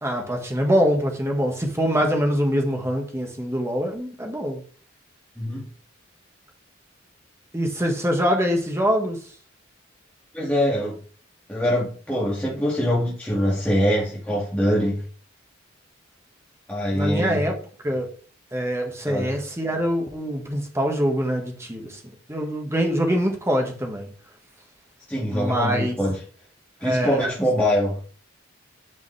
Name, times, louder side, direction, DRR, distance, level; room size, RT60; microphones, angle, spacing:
voice 1, 0.0-4.6 7.5-9.2 16.9-17.5 17.8-18.1 18.5-22.0 22.3-24.1 25.3-25.9 26.8-27.3, equal, 15° right, 1.6 m, -24 dB
voice 2, 10.3-11.0 11.5-15.0 16.7-17.5 19.1-19.3 25.1-26.2 26.8-28.0, equal, 5° left, 1.9 m, -23 dB
11.0 x 5.3 x 3.3 m
head